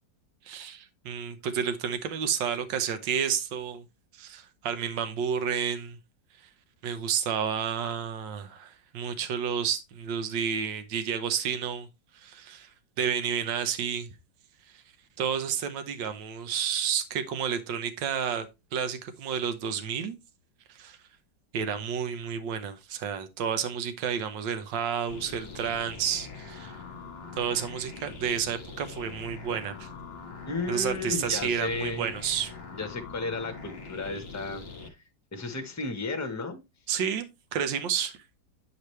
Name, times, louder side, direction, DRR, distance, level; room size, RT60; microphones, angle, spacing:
voice 1, 0.4-3.8 4.2-6.0 6.8-11.9 12.1-12.7 13.0-14.1 14.7-14.8 15.2-20.2 20.7-21.0 21.5-26.8 27.3-29.9 30.7-32.5 36.9-38.2, right 7 dB, 75° right, 1.6 m, -30 dB
sound 1, 25.1-34.9, left 4 dB, 35° left, 1.6 m, -43 dB
voice 2, 30.4-32.1 32.7-35.0 35.3-36.6, left 3 dB, 10° left, 1.0 m, -34 dB
9.4 x 5.1 x 3.2 m
omnidirectional pair, 2.0 m